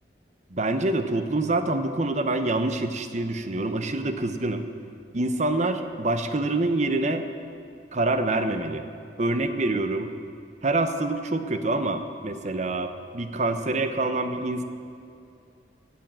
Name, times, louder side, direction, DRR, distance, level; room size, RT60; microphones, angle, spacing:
voice 1, 0.5-4.7 5.1-7.3 7.9-8.8 9.2-10.1 10.6-14.6, right 2 dB, 40° right, 8 dB, 0.8 m, -26 dB
16.5 x 7.2 x 7.5 m, 2.5 s
head